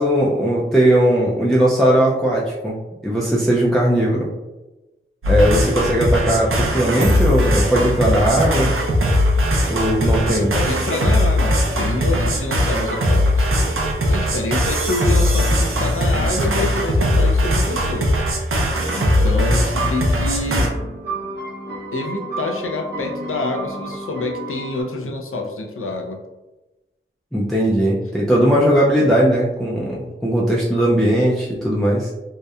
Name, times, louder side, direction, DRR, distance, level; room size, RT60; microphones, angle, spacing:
voice 1, 0.0-2.8 3.0-4.3 5.3-8.8 9.7-10.5 27.3-32.1, right 1 dB, ahead, -6 dB, 0.4 m, -18 dB
sound 1, 5.2-20.7, equal, 80° right, 0.5 m, -19 dB
voice 2, 10.3-13.4 14.1-18.1 18.9-20.7 21.9-26.2, left 2 dB, 80° left, 2 dB, 0.4 m, -27 dB
sound 2, 19.6-24.8, right 2 dB, 55° right, 0.8 m, -31 dB
2.8 x 2.1 x 2.3 m, 1.0 s
wide cardioid pair, 65°, 21 cm